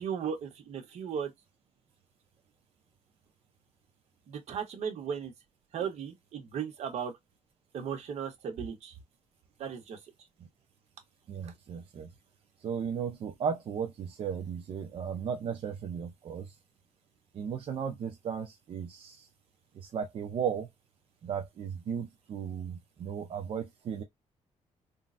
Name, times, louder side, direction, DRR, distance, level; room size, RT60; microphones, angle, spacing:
voice 1, 0.0-1.3 4.3-5.3 5.7-7.1 7.7-8.9 9.6-10.0 11.4-11.5, right 7 dB, 60° right, 1.0 m, -36 dB
voice 2, 11.3-12.1 12.6-16.6 17.3-19.3 19.7-20.7 21.2-24.0, right 7 dB, 45° right, 0.5 m, -35 dB
3.7 x 2.1 x 2.5 m
cardioid pair, 175°, 12 cm